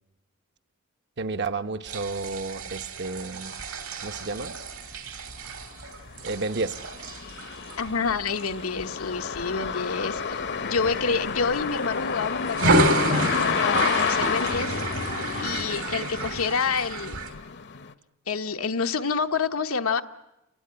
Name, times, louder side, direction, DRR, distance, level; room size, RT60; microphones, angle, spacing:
voice 1, 1.2-3.6 4.0-4.5 6.2-6.8 16.0-16.1, right 3 dB, 55° right, 8 dB, 1.0 m, -31 dB
sound 1, 1.8-9.7 10.2-10.4 10.8-11.9 12.4-17.3, right 1 dB, 85° right, 3.1 m, -29 dB
sound 2, 4.5-4.6 5.1-17.9, left 6 dB, 55° left, 0.9 m, -30 dB
voice 2, 7.8-14.8 15.4-17.2 18.3-20.0, left 5 dB, 85° left, 7 dB, 1.1 m, -28 dB
30.0 x 19.5 x 9.9 m, 0.96 s
head